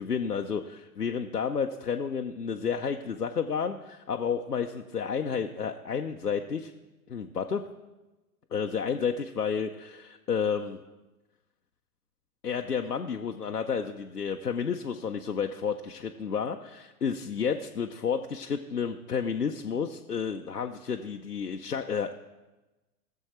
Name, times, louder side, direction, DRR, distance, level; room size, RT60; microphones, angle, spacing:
voice 1, 0.0-6.7 7.1-7.6 8.5-10.8 12.4-16.6 17.0-22.1, left 6 dB, 85° left, 4 dB, 0.7 m, -31 dB
18.0 x 7.1 x 4.4 m, 1.1 s
figure-of-eight pair, 100°, 46 cm